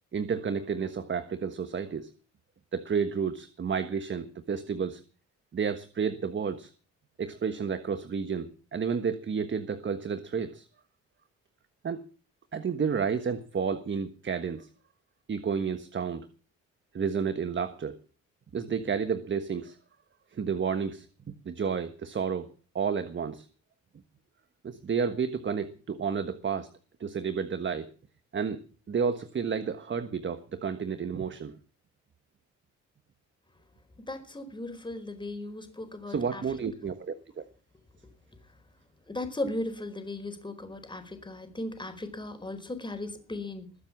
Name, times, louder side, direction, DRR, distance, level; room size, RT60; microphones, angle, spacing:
voice 1, 0.1-2.1 2.7-5.0 5.5-6.7 7.2-10.7 11.8-12.0 12.5-14.7 15.3-16.3 16.9-18.0 18.5-19.8 20.3-22.5 22.7-23.5 24.6-26.7 27.0-27.9 28.3-28.6 28.9-31.5 36.1-37.4, right 6 dB, 40° right, 10 dB, 1.5 m, -31 dB
voice 2, 34.0-36.4 39.1-43.7, left 2 dB, 15° left, 7 dB, 4.6 m, -37 dB
21.5 x 7.6 x 7.4 m, 0.38 s
cardioid pair, 90°, 30 cm